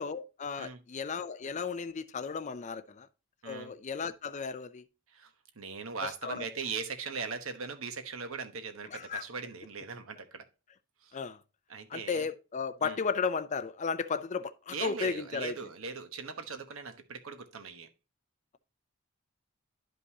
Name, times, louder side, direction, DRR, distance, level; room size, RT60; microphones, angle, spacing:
voice 1, 0.0-3.1 3.4-4.8 6.0-6.4 8.9-9.2 11.1-11.4 11.9-15.6, left 5 dB, 35° left, 0.4 m, -34 dB
voice 2, 3.4-3.8 5.1-10.5 11.0-11.2 11.7-12.3 12.8-13.0 14.7-17.9, right 5 dB, 65° right, 1.0 m, -40 dB
11.0 x 5.2 x 2.8 m
head